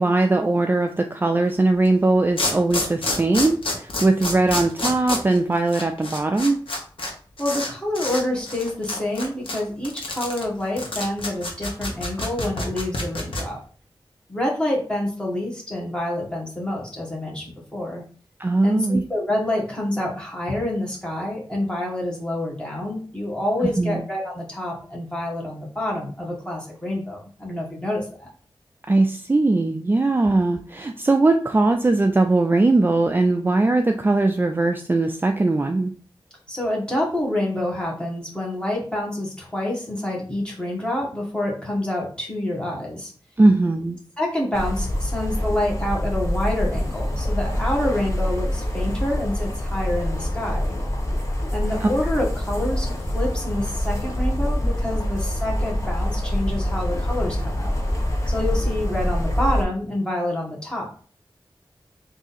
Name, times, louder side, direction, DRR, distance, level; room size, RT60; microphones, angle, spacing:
voice 1, 0.0-6.6 18.4-19.0 23.6-24.0 28.9-35.9 43.4-44.0 51.8-51.9, right 2 dB, 25° right, 5 dB, 0.3 m, -20 dB
sound 1, 1.8-1.9 2.4-7.1 7.4-7.7 7.9-8.2 8.5-13.4, left 2 dB, 90° left, 1.0 m, -28 dB
voice 2, 7.4-13.6 14.3-18.0 18.6-28.3 36.5-43.1 44.2-50.7 51.5-52.9 53.1-57.7 58.3-61.0, left 1 dB, 10° left, -3 dB, 1.6 m, -27 dB
sound 2, 44.5-59.6, left 1 dB, 35° left, 1.1 m, -25 dB
3.6 x 2.7 x 4.1 m, 0.41 s
wide cardioid pair, 70°, 9 cm